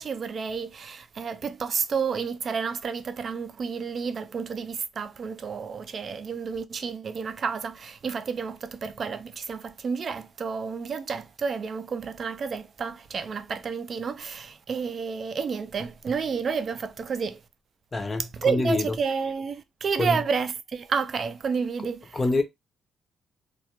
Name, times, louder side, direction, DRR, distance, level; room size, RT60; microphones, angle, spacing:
voice 1, 0.0-17.4 18.2-22.2, right 5 dB, 50° right, 0.3 m, -30 dB
voice 2, 17.9-19.0 19.9-20.2 22.1-22.4, left 2 dB, 25° left, 0.6 m, -26 dB
2.2 x 2.0 x 2.9 m
cardioid pair, 90°, 0 cm